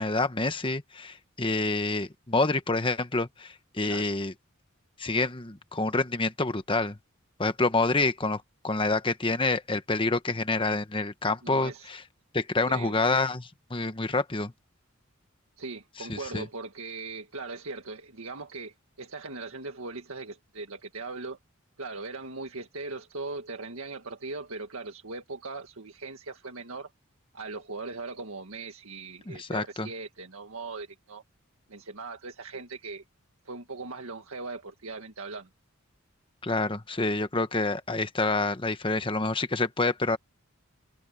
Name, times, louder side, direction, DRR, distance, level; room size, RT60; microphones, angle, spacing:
voice 1, 0.0-4.3 5.0-7.0 7.4-12.0 12.3-14.5 16.1-16.4 29.3-29.9 36.4-40.2, left 3 dB, 25° left, 1.1 m, -27 dB
voice 2, 11.4-11.9 12.6-13.0 15.6-21.4 21.8-26.9 27.3-31.2 31.7-33.0 33.4-35.5, right 3 dB, 90° right, 1.8 m, -39 dB
head